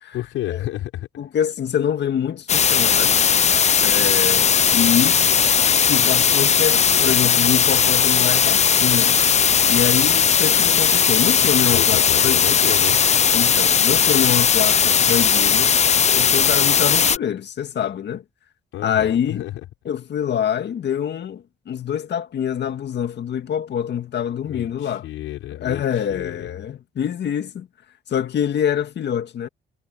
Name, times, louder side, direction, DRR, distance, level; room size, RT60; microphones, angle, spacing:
voice 1, 0.1-1.1 11.7-13.0 18.7-19.6 24.4-26.6, left 14 dB, 90° left, 6.0 m, -31 dB
voice 2, 1.2-3.2 3.8-5.2 5.9-9.2 9.7-12.4 13.3-15.8 16.0-18.2 18.8-19.4 19.9-25.1 25.5-27.7 28.1-29.5, left 9 dB, 60° left, 1.9 m, -25 dB
sound 1, 2.5-17.2, left 7 dB, 35° left, 0.6 m, -17 dB
cardioid pair, 90°, 20 cm